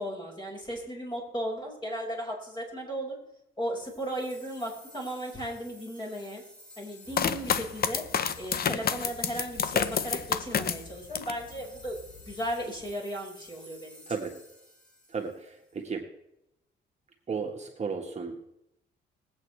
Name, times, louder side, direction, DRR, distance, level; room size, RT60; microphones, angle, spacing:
voice 1, 0.0-3.2 3.6-6.4 6.8-8.0 8.4-12.0 12.2-14.0, equal, 25° left, -2 dB, 5.4 m, -36 dB
sound 1, 3.8-15.8, equal, 5° left, 4.7 m, -53 dB
sound 2, 7.1-11.4 11.9-12.5, left 7 dB, 50° left, 0.8 m, -29 dB
voice 2, 15.1-16.1 17.3-18.4, right 5 dB, 35° right, 1 dB, 1.6 m, -34 dB
21.0 x 8.5 x 3.4 m, 0.83 s
cardioid pair, 90°, 20 cm